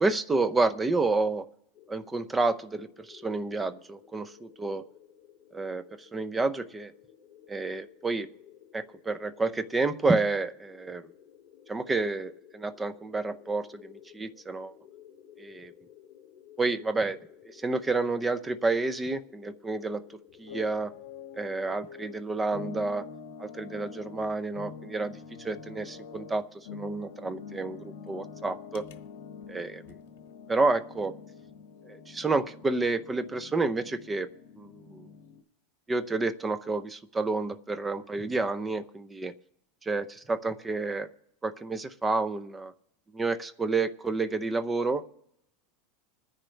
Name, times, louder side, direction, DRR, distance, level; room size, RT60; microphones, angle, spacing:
voice 1, 0.0-1.4 1.9-4.8 5.5-5.8 6.1-6.9 7.5-8.3 8.7-11.0 11.7-14.7 15.4-15.7 16.6-17.2 17.5-20.0 20.4-20.9 21.3-23.1 23.4-26.4 26.7-28.8 29.5-30.0 30.5-31.1 31.9-34.3 34.6-35.1 35.9-39.3 39.8-41.1 41.4-42.7 43.1-45.1, right 3 dB, 10° right, 12 dB, 0.6 m, -29 dB
sound 1, 1.7-20.7, left 9 dB, 35° left, 3.7 m, -55 dB
sound 2, 17.6-18.0 20.3-35.4, left 6 dB, 75° left, 1.4 m, -46 dB
26.5 x 10.0 x 3.3 m, 0.78 s
supercardioid pair, 150°, 0 cm